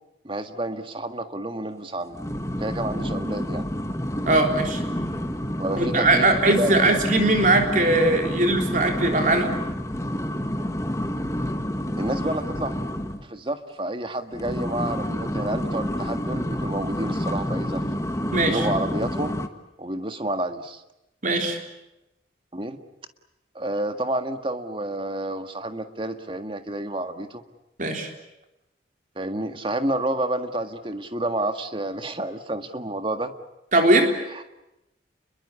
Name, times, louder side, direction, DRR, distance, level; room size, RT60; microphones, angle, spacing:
voice 1, 0.2-2.2 2.6-3.7 5.6-6.3 6.6-6.8 12.0-12.7 13.3-17.8 18.5-19.4 19.8-20.8 22.5-22.8 23.5-27.4 29.1-33.3 34.3-34.4, right 1 dB, 30° right, 7 dB, 1.8 m, -29 dB
sound 1, 2.1-13.3 14.3-19.5, equal, 15° left, 1.5 m, -29 dB
voice 2, 4.3-4.8 5.8-9.5 18.3-18.7 21.2-21.6 27.8-28.1 33.7-34.1, right 2 dB, 45° right, 4 dB, 3.6 m, -20 dB
29.5 x 22.5 x 8.5 m, 0.91 s
head